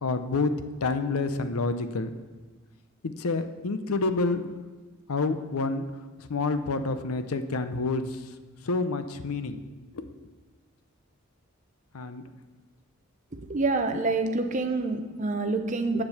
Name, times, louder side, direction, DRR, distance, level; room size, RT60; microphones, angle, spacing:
voice 1, 0.0-0.5 0.8-2.1 3.0-4.5 5.1-5.8 6.2-8.3 8.6-9.6 9.9-10.1 11.9-12.2, left 3 dB, 80° left, 10 dB, 0.6 m, -28 dB
voice 2, 13.3-16.0, right 3 dB, 35° right, 6 dB, 0.7 m, -27 dB
7.6 x 7.1 x 6.5 m, 1.3 s
head